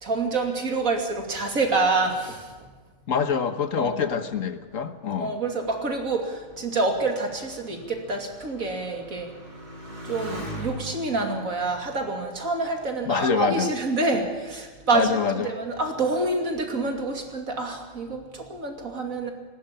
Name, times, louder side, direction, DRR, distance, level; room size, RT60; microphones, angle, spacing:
voice 1, 0.0-2.5 3.8-3.9 5.2-9.3 10.0-19.3, right 3 dB, 80° right, 3 dB, 3.1 m, -27 dB
voice 2, 3.1-5.3 13.1-13.7 14.9-15.5, left 6 dB, 70° left, 9 dB, 1.6 m, -25 dB
Motorcycle, 4.4-13.4 14.1-14.7, right 1 dB, 35° right, 4.5 m, -42 dB
19.0 x 17.0 x 8.8 m, 1.4 s
omnidirectional pair, 1.4 m